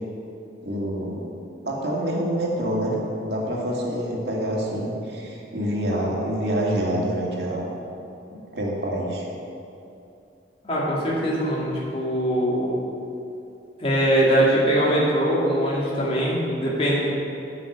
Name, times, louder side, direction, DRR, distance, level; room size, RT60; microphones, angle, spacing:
voice 1, 0.6-1.3 1.6-7.7 8.3-9.3, right 1 dB, 65° right, -3 dB, 2.4 m, -26 dB
voice 2, 10.6-12.8 13.8-17.0, right 1 dB, 35° left, -6 dB, 2.5 m, -22 dB
9.5 x 6.1 x 8.6 m, 2.7 s
head